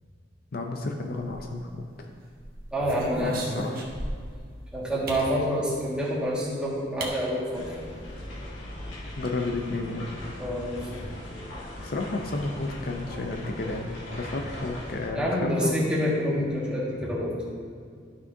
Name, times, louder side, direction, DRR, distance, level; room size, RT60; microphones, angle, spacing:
voice 1, 0.5-1.8 3.2-3.9 9.2-10.1 11.8-15.7, left 2 dB, 50° left, 3 dB, 0.6 m, -32 dB
sound 1, 1.2-1.9 2.4-4.4 5.1-5.3 6.4-6.5 7.0-7.1 7.5-7.6 7.8-8.3, right 1 dB, 50° right, 1.2 m, -37 dB
voice 2, 2.7-3.7 4.7-7.7 10.4-11.0 15.1-17.3, equal, 5° right, -7 dB, 1.7 m, -27 dB
sound 2, 7.5-15.1, left 1 dB, 80° left, 1.8 m, -39 dB
12.0 x 6.2 x 2.7 m, 2.2 s
head